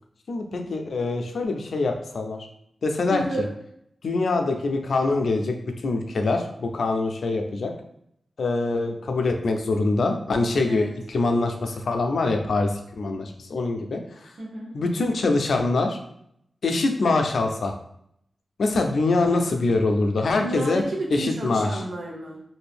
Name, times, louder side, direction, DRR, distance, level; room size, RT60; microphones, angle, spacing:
voice 1, 0.3-2.5 2.8-3.2 4.0-5.6 5.8-7.7 8.4-12.7 13.0-14.0 14.7-16.0 16.6-17.7 18.6-20.8 21.1-21.7, left 3 dB, 80° left, 4 dB, 0.4 m, -24 dB
voice 2, 3.1-3.5 10.6-10.9 14.4-14.7 20.3-22.4, right 1 dB, 80° right, -2 dB, 0.8 m, -31 dB
2.6 x 2.5 x 3.3 m, 0.73 s
wide cardioid pair, 75°, 0 cm